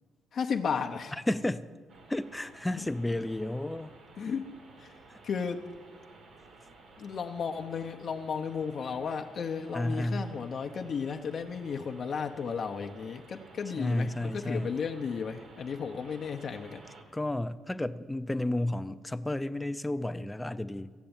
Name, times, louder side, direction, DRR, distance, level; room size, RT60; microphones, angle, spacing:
voice 1, 0.3-1.1 2.8-2.9 4.2-4.5 4.8-4.9 5.2-5.6 7.0-16.8, left 6 dB, 55° left, 4 dB, 0.8 m, -34 dB
voice 2, 1.3-1.7 2.1-3.9 5.1-5.2 9.7-10.3 13.8-14.7 17.1-20.9, left 1 dB, 10° left, 11 dB, 0.5 m, -32 dB
sound 1, 1.9-17.0, right 3 dB, 70° right, 2.1 m, -54 dB
14.5 x 6.8 x 8.9 m, 1.5 s
cardioid pair, 90°, 0 cm